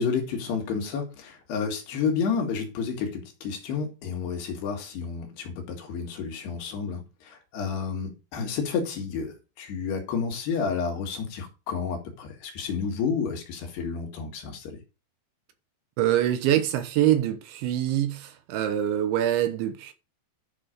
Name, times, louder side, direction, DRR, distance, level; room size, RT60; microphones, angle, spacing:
voice 1, 0.0-14.8, left 5 dB, 65° left, 3.7 m, -30 dB
voice 2, 16.0-19.9, right 11 dB, 75° right, 3.2 m, -24 dB
11.5 x 6.1 x 5.1 m
omnidirectional pair, 5.6 m